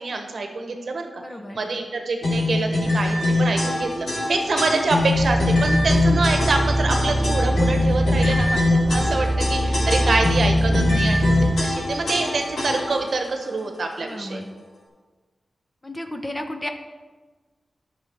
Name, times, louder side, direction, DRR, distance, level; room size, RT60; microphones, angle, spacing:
voice 1, 0.0-1.1 1.5-11.2 11.6-14.4, right 3 dB, 55° right, 4 dB, 1.1 m, -26 dB
voice 2, 1.2-1.7 8.2-8.6 10.7-11.3 14.0-14.5 15.8-16.7, left 1 dB, 15° left, 6 dB, 0.6 m, -33 dB
sound 1, 2.2-13.1, left 2 dB, 90° left, 3.1 m, -23 dB
sound 2, 5.1-11.5, right 1 dB, 25° right, 1.2 m, -23 dB
13.0 x 6.0 x 4.6 m, 1.3 s
wide cardioid pair, 170°, 0 cm